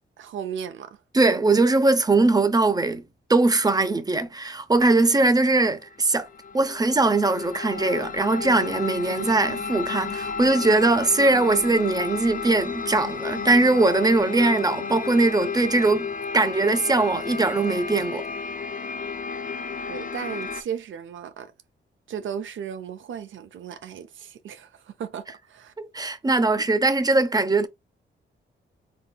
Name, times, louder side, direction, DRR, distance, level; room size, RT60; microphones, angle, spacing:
voice 1, 0.2-1.0 16.6-16.7 19.9-21.5 22.1-25.7, right 8 dB, 75° right, 0.5 m, -35 dB
voice 2, 1.1-3.0 3.3-6.3 6.5-18.2 25.8-27.7, right 2 dB, 20° right, 0.5 m, -21 dB
sound 1, 5.8-20.6, left 5 dB, 40° left, 0.4 m, -32 dB
3.9 x 2.6 x 2.2 m
cardioid pair, 85°, 20 cm